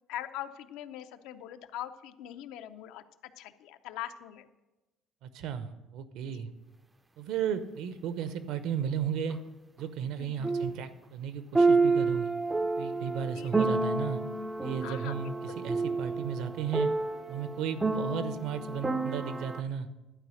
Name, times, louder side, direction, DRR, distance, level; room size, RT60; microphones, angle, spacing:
voice 1, 0.1-3.0 3.4-4.5 6.3-6.4 10.2-10.5 13.4-13.7 14.8-15.6 17.9-18.1, left 12 dB, 80° left, 10 dB, 0.6 m, -42 dB
voice 2, 5.2-6.5 7.2-9.4 9.8-12.3 12.8-14.2 14.6-16.9 17.3-19.9, right 8 dB, 70° right, 12 dB, 0.7 m, -34 dB
sound 1, 9.3-9.4 10.4-10.8 11.5-19.6, right 3 dB, 10° right, 0.4 m, -29 dB
11.5 x 4.9 x 7.7 m, 1.1 s
cardioid pair, 165°, 0 cm